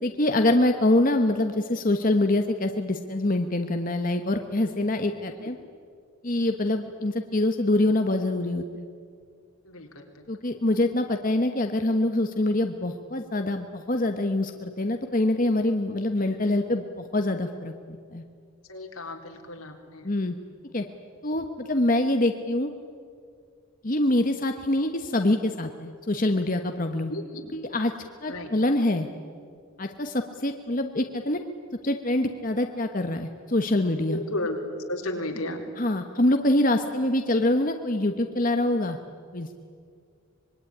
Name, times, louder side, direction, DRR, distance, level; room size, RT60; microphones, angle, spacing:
voice 1, 0.0-5.6 6.2-8.8 10.3-17.7 18.1-18.2 20.0-20.4 20.7-20.8 21.2-22.7 23.8-27.1 27.5-27.9 28.2-29.1 29.8-31.4 31.8-34.2 35.8-39.0 39.3-39.6, left 1 dB, 40° left, 5 dB, 1.2 m, -25 dB
voice 2, 9.7-10.1 18.7-20.1 27.1-27.5 28.3-28.5 34.1-34.6 34.9-35.6, left 1 dB, 85° left, 2 dB, 3.9 m, -33 dB
25.5 x 22.0 x 10.0 m, 2.2 s
head